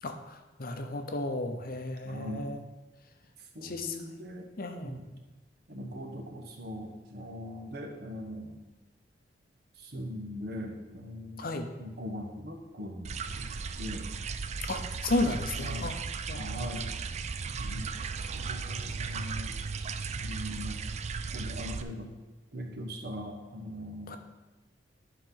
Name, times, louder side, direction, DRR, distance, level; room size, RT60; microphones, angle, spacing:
voice 1, 0.0-2.6 3.6-4.0 4.6-5.2 11.4-11.7 14.6-16.0 16.3-16.4 24.1-24.2, left 2 dB, 55° left, 6 dB, 0.8 m, -33 dB
voice 2, 2.0-2.5 3.5-4.5 4.8-5.1 5.7-8.6 9.8-11.5 11.8-13.5 13.8-14.1 15.5-15.9 16.3-16.9 17.5-18.0 18.3-19.5 20.2-20.8 21.3-22.1 22.5-24.2, equal, 60° right, 2 dB, 1.2 m, -40 dB
sound 1, 13.0-21.8, right 5 dB, 35° right, 0.4 m, -36 dB
10.5 x 4.0 x 5.5 m, 1.1 s
head